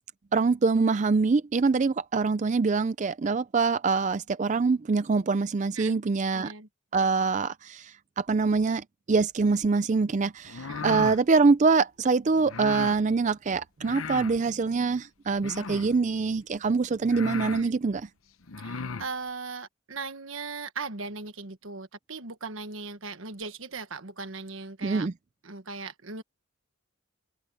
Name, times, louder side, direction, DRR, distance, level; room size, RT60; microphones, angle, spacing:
voice 1, 0.3-6.5 6.9-18.1 24.8-25.1, right 4 dB, 35° right, 0.4 m, -24 dB
voice 2, 6.3-6.7 10.7-10.9 17.5-17.7 18.6-25.1 25.4-26.2, right 4 dB, 75° right, 1.4 m, -38 dB
sound 1, 10.4-11.2 12.4-13.0 13.8-14.4 15.4-16.0 16.7-16.8 17.1-17.6 18.4-19.1, left 5 dB, 85° left, 0.9 m, -36 dB
open air
head